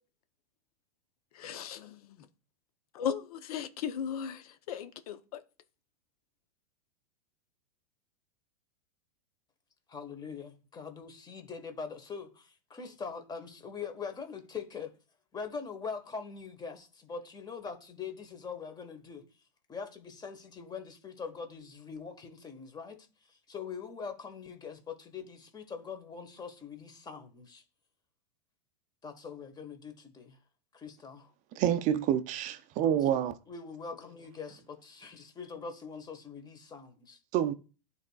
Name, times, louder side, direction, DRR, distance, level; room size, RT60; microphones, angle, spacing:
voice 1, 1.4-1.9 2.9-5.4, left 8 dB, 65° left, 0.8 m, -36 dB
voice 2, 9.9-14.9 15.3-19.2 19.7-27.6 29.0-30.4 30.7-31.3 32.7-32.9 33.5-37.2, left 5 dB, 20° left, 1.4 m, -43 dB
voice 3, 31.5-33.4 37.3-37.5, right 10 dB, 40° right, 0.5 m, -28 dB
12.0 x 4.2 x 2.3 m
hypercardioid pair, 110°, 20 cm